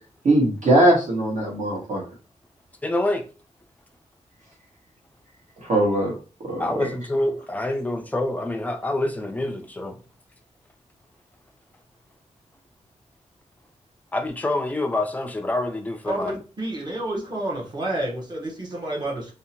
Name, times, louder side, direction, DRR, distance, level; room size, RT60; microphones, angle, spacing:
voice 1, 0.2-2.0 5.6-6.1 6.4-6.9, right 1 dB, 75° right, 1.2 m, -20 dB
voice 2, 2.8-3.2 6.6-9.9 14.1-16.4, left 1 dB, 10° left, 0.3 m, -26 dB
voice 3, 16.1-19.3, right 1 dB, 35° right, 0.7 m, -29 dB
2.7 x 2.0 x 2.7 m
wide cardioid pair, 180°, 13 cm